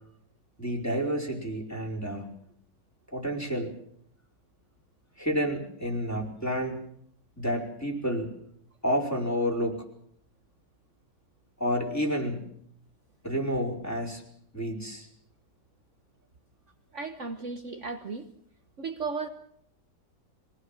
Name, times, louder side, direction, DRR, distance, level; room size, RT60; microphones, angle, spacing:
voice 1, 0.6-2.3 3.1-3.7 5.2-6.8 7.4-8.3 8.8-9.8 11.6-12.4 13.2-14.2 14.5-15.1, equal, 10° left, -2 dB, 4.8 m, -29 dB
voice 2, 16.9-18.3 18.8-19.3, right 4 dB, 45° right, 7 dB, 1.4 m, -35 dB
24.0 x 18.5 x 7.5 m, 0.68 s
omnidirectional pair, 1.9 m